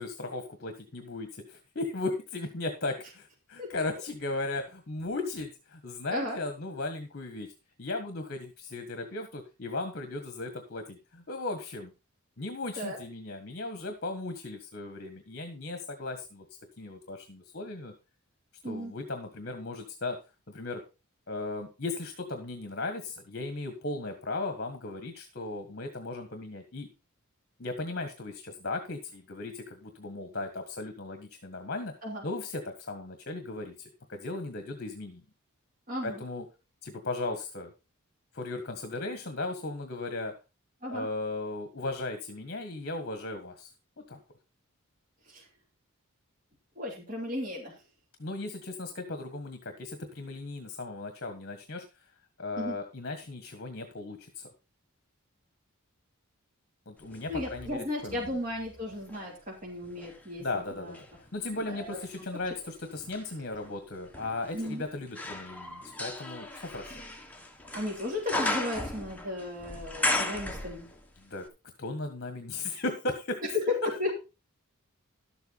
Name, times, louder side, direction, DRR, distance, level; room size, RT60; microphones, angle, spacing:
voice 1, 0.0-7.5 7.8-11.9 12.4-16.4 16.8-17.9 18.6-20.2 20.5-20.8 21.3-26.9 27.6-31.9 32.2-35.2 36.0-36.4 36.8-37.7 38.3-40.3 40.9-43.7 44.1-44.2 48.2-51.8 52.4-54.5 56.9-58.3 60.4-61.0 61.3-67.0 71.2-71.5 71.8-73.4, left 2 dB, 50° left, 7 dB, 1.5 m, -36 dB
voice 2, 35.9-36.2 40.8-41.1 45.3-45.4 46.7-47.7 52.6-52.8 57.3-60.9 61.5-62.0 64.5-64.8 67.7-70.9 74.0-74.1, left 1 dB, 40° right, -2 dB, 3.2 m, -35 dB
sound 1, 57.1-59.3 59.8-71.2 71.4-71.5, left 1 dB, 5° left, 1.4 m, -37 dB
12.0 x 8.0 x 4.2 m, 0.29 s
head